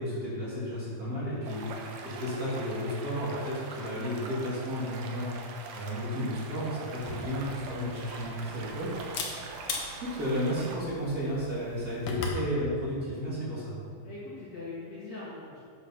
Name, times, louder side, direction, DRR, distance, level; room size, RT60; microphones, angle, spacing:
voice 1, 0.0-1.6 2.0-5.3 5.7-8.9 10.0-13.8, equal, 30° right, -8 dB, 2.1 m, -33 dB
sound 1, 1.4-10.8, right 4 dB, 70° right, 2.3 m, -43 dB
Camera, 6.9-12.5, left 4 dB, 75° left, 1.5 m, -40 dB
voice 2, 14.0-15.6, left 3 dB, 50° left, -9 dB, 2.5 m, -42 dB
9.4 x 6.1 x 5.6 m, 2.2 s
omnidirectional pair, 4.4 m